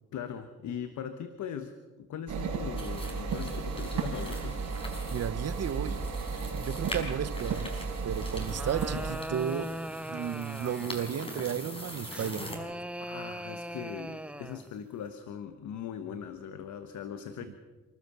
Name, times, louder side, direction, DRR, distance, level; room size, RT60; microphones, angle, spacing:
voice 1, 0.1-4.6 13.0-17.6, left 8 dB, 70° left, 9 dB, 1.3 m, -40 dB
sound 1, 2.3-9.1, right 5 dB, 75° right, 5.0 m, -34 dB
sound 2, 2.8-12.6, left 1 dB, 20° left, 5.4 m, -44 dB
voice 2, 5.1-6.0 6.5-9.7 10.1-12.6, right 8 dB, 55° right, 14 dB, 1.2 m, -34 dB
sound 3, 8.3-11.1 12.1-14.7, right 1 dB, 5° right, 0.7 m, -40 dB
28.5 x 13.0 x 7.0 m, 1.3 s
cardioid pair, 90°, 30 cm